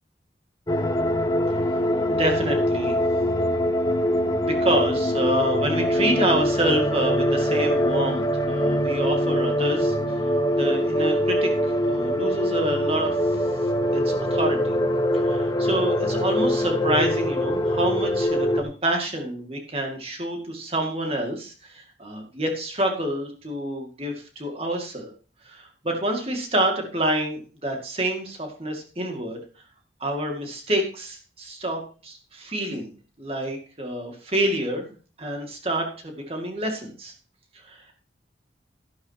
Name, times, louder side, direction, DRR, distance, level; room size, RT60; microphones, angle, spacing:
sound 1, 0.7-18.6, equal, 20° left, 0.9 m, -23 dB
voice 1, 2.1-3.0 4.4-10.0 10.5-13.2 13.9-14.8 15.2-25.1 25.5-29.4 30.0-32.9 33.2-34.9 35.2-37.1 37.6-37.9, right 1 dB, 30° right, 2 dB, 2.2 m, -27 dB
12.0 x 11.5 x 2.9 m, 0.36 s
head